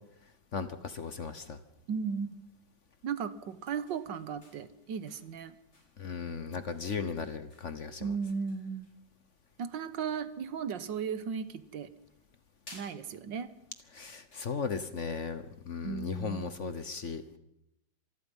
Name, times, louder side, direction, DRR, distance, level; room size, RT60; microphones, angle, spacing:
voice 1, 0.5-1.6 6.0-8.1 13.9-17.4, left 5 dB, 45° left, 11 dB, 1.2 m, -36 dB
voice 2, 1.9-2.4 3.0-5.6 8.0-8.9 9.6-11.9 12.7-13.5 15.8-16.5, right 6 dB, 75° right, 13 dB, 1.8 m, -36 dB
sound 1, 2.9-15.5, left 1 dB, 60° left, 7.5 m, -61 dB
26.0 x 19.5 x 5.5 m, 0.83 s
omnidirectional pair, 2.0 m